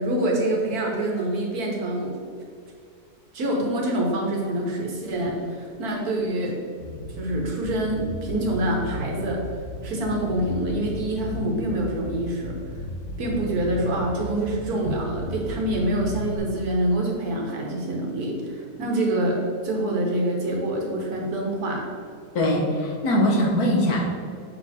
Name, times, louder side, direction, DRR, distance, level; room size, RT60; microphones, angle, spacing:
voice 1, 0.0-2.1 3.3-6.5 7.2-9.4 9.8-12.6 13.2-21.8, right 1 dB, 75° right, -1 dB, 1.7 m, -26 dB
Bass guitar, 6.8-16.4, left 1 dB, 55° left, 1.2 m, -35 dB
voice 2, 22.3-24.2, left 1 dB, 75° left, -1 dB, 1.6 m, -21 dB
6.4 x 4.2 x 4.2 m, 2.3 s
omnidirectional pair, 1.6 m